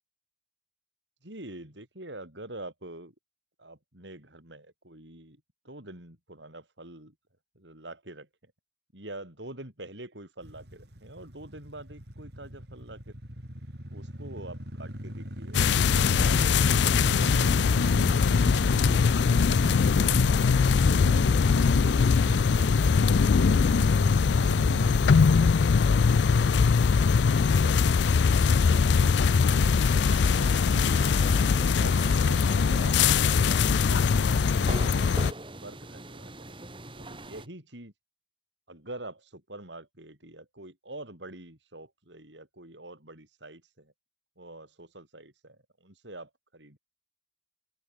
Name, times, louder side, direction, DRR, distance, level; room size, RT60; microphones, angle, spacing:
voice 1, 1.2-3.1 3.6-7.1 7.6-8.5 8.9-13.2 13.9-21.4 22.9-28.3 28.7-31.0 31.7-33.2 33.8-34.5 35.6-36.7 37.0-37.9 38.7-43.9 44.4-46.8, right 2 dB, 75° right, 7.5 m, -46 dB
sound 1, 10.4-25.3, equal, 60° right, 5.5 m, -39 dB
sound 2, 15.5-35.3, left 5 dB, 75° left, 0.4 m, -22 dB
sound 3, 29.5-37.5, right 2 dB, 25° right, 4.7 m, -42 dB
open air
head